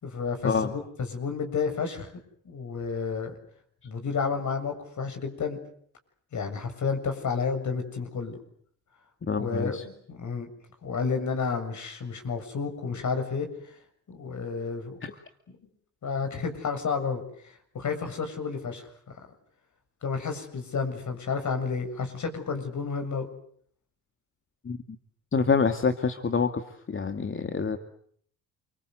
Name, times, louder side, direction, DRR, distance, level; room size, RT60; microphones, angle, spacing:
voice 1, 0.0-2.1 2.4-3.3 3.8-5.6 6.3-8.4 9.4-10.5 10.8-13.7 14.1-14.9 16.0-18.9 19.1-19.3 20.0-23.3, left 5 dB, 55° left, 6 dB, 7.7 m, -31 dB
voice 2, 9.2-9.8 15.0-15.1 24.6-24.8 25.3-27.8, left 5 dB, 35° left, 7 dB, 2.3 m, -27 dB
29.0 x 24.0 x 8.0 m, 0.63 s
supercardioid pair, 60°, 36 cm